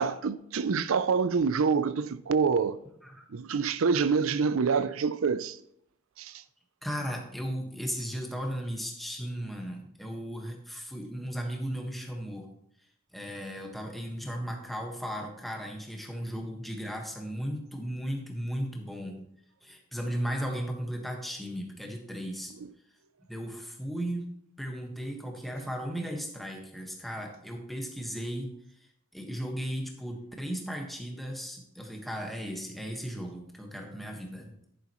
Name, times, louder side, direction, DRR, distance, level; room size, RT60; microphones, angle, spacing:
voice 1, 0.0-2.8 3.3-5.6 6.2-6.3, right 5 dB, 70° right, 0.5 m, -26 dB
voice 2, 6.8-12.5 13.1-19.2 19.6-22.5 23.3-24.3 24.6-28.5 29.1-34.6, equal, ahead, 1.5 m, -36 dB
10.5 x 9.9 x 3.1 m
head